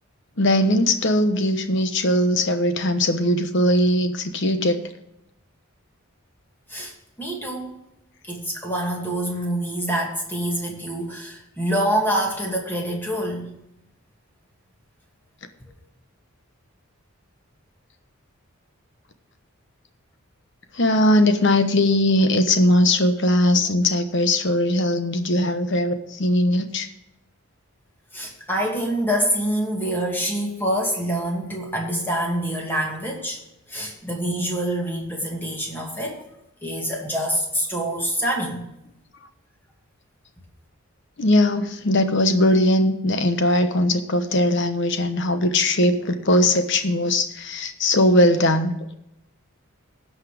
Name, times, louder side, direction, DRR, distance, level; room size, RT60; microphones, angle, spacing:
voice 1, 0.4-4.8 20.7-26.9 41.2-48.7, left 1 dB, 55° left, 8 dB, 1.1 m, -20 dB
voice 2, 7.2-7.8 8.3-13.5 28.1-33.4 33.7-36.2 36.6-38.7, right 1 dB, 10° left, -1 dB, 2.4 m, -26 dB
16.5 x 5.7 x 5.0 m, 0.83 s
head